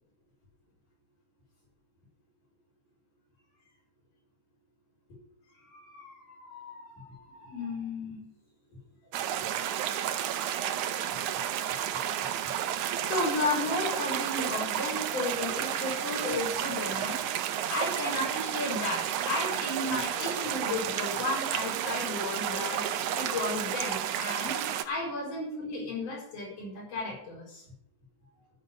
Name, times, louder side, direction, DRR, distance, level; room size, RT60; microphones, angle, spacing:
voice 1, 5.6-8.2 9.5-10.5 12.8-17.2 17.5-24.6 24.9-27.6, left 2 dB, 75° left, -5 dB, 6.5 m, -34 dB
sound 1, 9.1-24.8, right 10 dB, 80° right, 2.2 m, -32 dB
13.5 x 5.6 x 9.2 m, 0.73 s
omnidirectional pair, 3.7 m